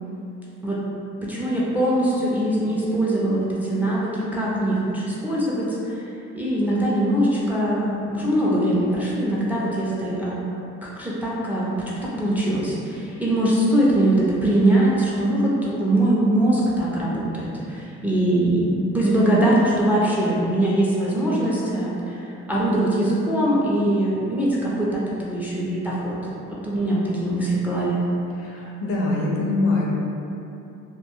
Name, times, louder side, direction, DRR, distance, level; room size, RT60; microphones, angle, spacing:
voice 1, 1.2-10.4 10.8-26.2 26.5-28.0, right 1 dB, 5° right, -6 dB, 0.4 m, -22 dB
voice 2, 28.4-29.9, left 2 dB, 50° left, -3 dB, 0.5 m, -23 dB
2.3 x 2.2 x 2.9 m, 2.8 s
cardioid pair, 90°, 30 cm